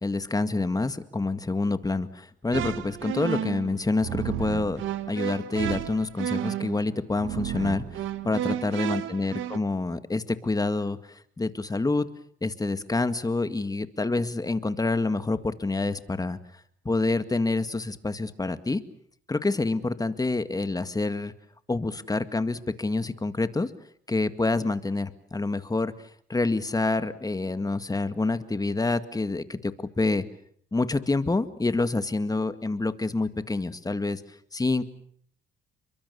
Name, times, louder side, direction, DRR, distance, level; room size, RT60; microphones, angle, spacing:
voice 1, 0.0-12.1 12.4-16.4 16.9-18.8 19.3-21.3 21.7-23.7 24.1-25.9 26.3-30.2 30.7-34.2 34.5-34.9, left 3 dB, 20° left, 11 dB, 2.0 m, -27 dB
sound 1, 2.5-9.6, right 11 dB, 85° right, 1.7 m, -32 dB
29.5 x 23.5 x 7.0 m, 0.62 s
cardioid pair, 90°, 20 cm